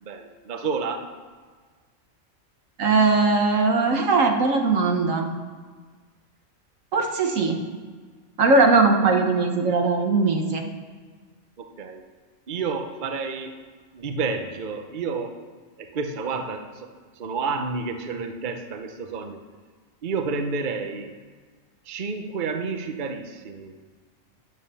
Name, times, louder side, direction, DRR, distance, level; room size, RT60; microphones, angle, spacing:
voice 1, 0.0-1.1 11.6-12.0 12.5-13.6 13.9-15.4 15.8-19.4 20.0-21.1 21.8-23.7, right 4 dB, 45° right, 6 dB, 0.9 m, -30 dB
voice 2, 2.8-5.3 6.9-7.6 8.4-10.7, right 3 dB, 75° right, 3 dB, 1.5 m, -20 dB
9.7 x 9.1 x 6.9 m, 1.5 s
omnidirectional pair, 1.4 m